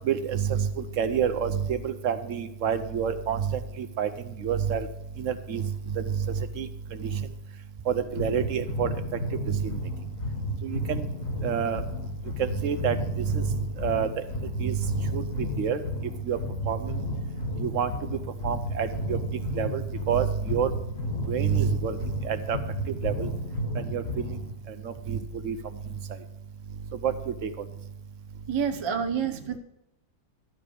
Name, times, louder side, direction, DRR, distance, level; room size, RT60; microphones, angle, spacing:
voice 1, 0.1-0.7 1.0-4.1 4.4-4.9 5.2-5.7 5.9-6.0 6.6-6.7 7.9-8.9 9.5-9.8 10.6-11.0 11.4-11.8 12.4-13.0 13.3-13.4 13.8-14.1 14.6-14.8 15.1-15.8 16.3-16.4 16.7-17.0 17.6-17.9 18.4-19.2 19.6-19.8 20.1-20.7 21.3-22.0 22.2-22.6 23.0-23.3 23.9-24.0 25.1-25.2 25.4-25.6 27.0-27.1 27.4-27.5, right 8 dB, 65° right, 10 dB, 0.9 m, -27 dB
sound 1, 8.1-24.5, left 1 dB, 60° left, 1.9 m, -33 dB
voice 2, 28.5-29.6, right 7 dB, 35° right, 7 dB, 0.4 m, -28 dB
12.5 x 4.7 x 6.9 m, 0.85 s
omnidirectional pair, 1.6 m